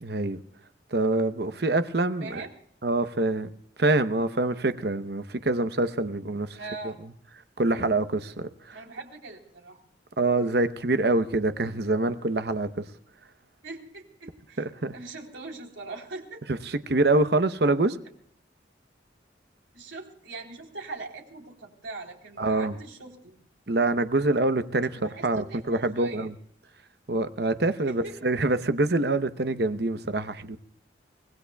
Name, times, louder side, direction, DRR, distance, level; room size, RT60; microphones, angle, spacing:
voice 1, 0.0-0.4 0.9-2.4 2.8-3.5 3.8-6.6 6.8-6.9 7.6-8.8 10.2-12.8 14.6-14.9 16.9-18.0 22.4-22.8 23.7-26.3 27.1-30.6, right 2 dB, 60° right, 11 dB, 0.8 m, -25 dB
voice 2, 2.2-2.5 6.6-7.0 8.7-9.8 13.6-14.6 14.9-16.6 19.7-23.3 25.0-26.3 27.9-28.2, right 3 dB, 90° right, 1 dB, 3.6 m, -41 dB
25.0 x 19.5 x 2.3 m, 0.66 s
head